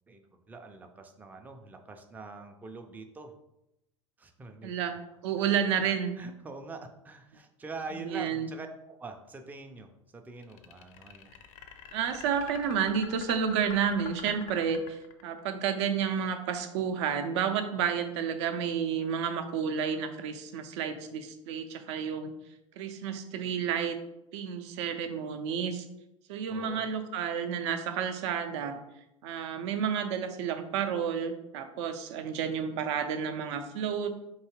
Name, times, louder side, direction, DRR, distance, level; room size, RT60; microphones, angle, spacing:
voice 1, 0.1-3.3 4.2-4.7 6.2-11.3 26.5-26.9, right 3 dB, 10° right, 5 dB, 0.4 m, -44 dB
voice 2, 4.6-6.1 8.0-8.5 11.9-22.3 22.8-24.0 24.3-25.9 26.3-28.8 29.2-34.2, right 7 dB, 60° right, 8 dB, 0.5 m, -31 dB
sound 1, 10.4-15.5, left 7 dB, 45° left, 0.5 m, -45 dB
4.6 x 2.8 x 2.9 m, 0.86 s
figure-of-eight pair, 75°, 17 cm